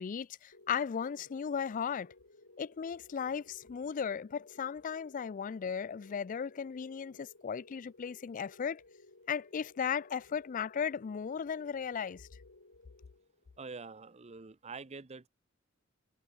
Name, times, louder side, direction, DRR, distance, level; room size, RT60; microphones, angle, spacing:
voice 1, 0.0-2.1 2.6-8.8 9.3-12.3, left 7 dB, 40° left, 0.3 m, -36 dB
sound 1, 0.5-13.7, left 2 dB, 65° left, 2.6 m, -59 dB
voice 2, 13.6-15.3, right 4 dB, 30° right, 0.7 m, -46 dB
head